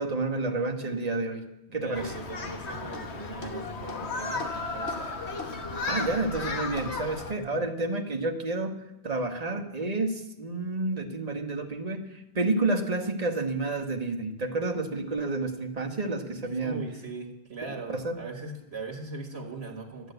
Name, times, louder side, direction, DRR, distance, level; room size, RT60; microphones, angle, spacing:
voice 1, 0.0-1.5 1.7-2.1 5.9-8.7 9.0-16.9 17.9-18.2, right 2 dB, 35° right, 4 dB, 1.4 m, -30 dB
voice 2, 1.7-5.3 7.1-7.6 16.4-20.1, right 3 dB, 75° right, 2 dB, 1.8 m, -40 dB
Human group actions, 1.9-7.3, left 3 dB, 80° left, 1.5 m, -34 dB
12.5 x 9.6 x 8.0 m, 0.94 s
omnidirectional pair, 1.1 m